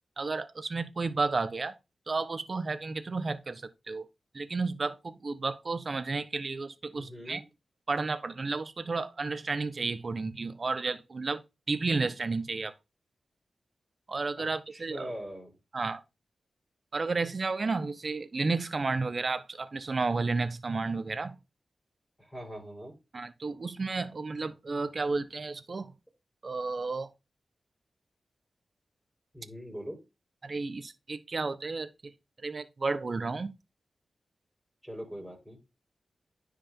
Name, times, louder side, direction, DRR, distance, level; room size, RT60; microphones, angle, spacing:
voice 1, 0.2-1.7 2.1-4.1 4.3-7.4 7.9-11.4 11.7-12.7 14.1-15.1 15.7-16.0 16.9-21.4 23.1-25.9 26.4-27.1 30.4-32.1 32.4-33.5, right 3 dB, 50° right, 1.1 m, -32 dB
voice 2, 6.9-7.4 14.4-15.5 22.2-22.9 29.3-30.0 34.8-35.6, equal, 5° right, 5.3 m, -42 dB
10.0 x 5.2 x 3.8 m
cardioid pair, 60°, 0 cm